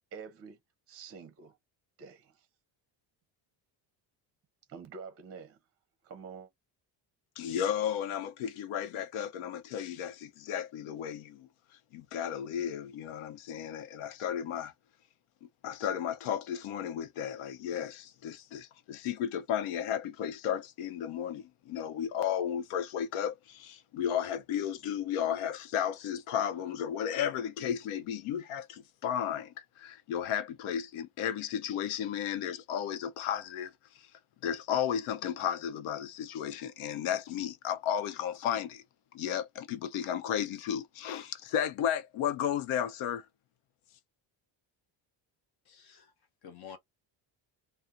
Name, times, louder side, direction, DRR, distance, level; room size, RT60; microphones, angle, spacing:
voice 1, 0.1-0.6 0.9-1.6 2.0-2.3 4.7-5.6 6.0-6.5, right 5 dB, 30° right, 0.6 m, -47 dB
voice 2, 7.4-11.5 11.9-14.7 15.4-34.1 34.4-38.8 39.1-43.2, left 9 dB, 85° left, 0.7 m, -34 dB
voice 3, 45.6-46.8, left 7 dB, 50° left, 0.8 m, -50 dB
2.7 x 2.1 x 3.4 m
cardioid pair, 165°, 49 cm